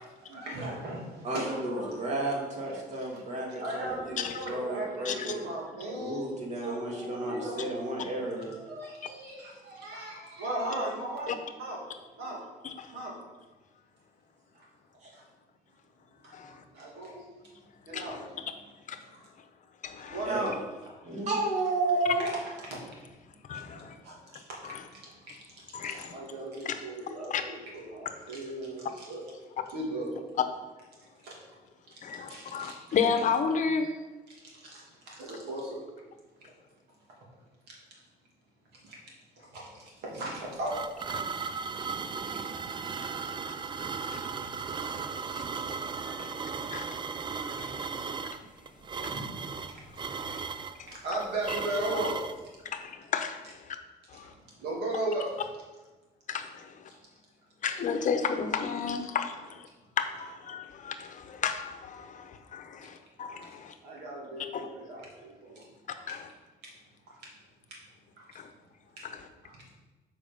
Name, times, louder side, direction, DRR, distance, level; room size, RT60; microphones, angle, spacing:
voice 1, 0.2-2.1 3.0-3.2 3.6-6.8 7.3-7.6 8.3-11.3 11.6-11.8 12.2-12.4 12.9-13.2 14.5-14.7 15.1-15.2 16.2-16.3 16.7-17.3 17.8-18.4 19.0-19.1 20.0-20.6 22.2-22.3 22.6-23.1 23.5-23.7 24.0-29.2 29.7-30.1 31.2-31.3 31.9-32.0 32.3-33.0 34.3-35.8 37.7-37.8 38.8-39.0 39.4-40.8 46.1-46.3 47.6-47.7 49.1-49.3 49.7-49.8 50.9-52.2 52.6-52.7 54.2-55.3 56.9-57.0 63.8-65.6 67.1-67.2 68.2-68.4 69.0-69.1 69.4-69.6, right 1 dB, 80° right, -3 dB, 2.5 m, -37 dB
voice 2, 1.2-5.4 5.9-8.5 15.0-15.1 16.5-16.6 19.1-19.2 20.3-20.5 21.0-22.3, right 2 dB, 45° right, -1 dB, 2.4 m, -32 dB
voice 3, 12.6-12.9 16.3-16.6 17.9-18.3 18.9-19.0 19.8-20.3 23.5-24.0 24.6-24.8 25.7-26.1 26.6-26.8 27.3-27.4 32.0-34.0 43.5-43.6 44.1-44.3 45.3-45.4 46.1-46.2 46.7-47.7 48.2-48.4 49.0-49.1 50.2-50.4 50.8-50.9 52.7-53.8 54.1-54.3 56.3-56.9 57.6-59.7 60.0-63.7 64.5-64.7 66.1-66.3 68.3-68.5 69.0-69.2, left 6 dB, 50° left, 8 dB, 0.8 m, -33 dB
sound 1, 40.2-52.4, right 5 dB, 30° right, 0.4 m, -36 dB
7.2 x 4.9 x 5.3 m, 1.2 s
cardioid pair, 110°, 17 cm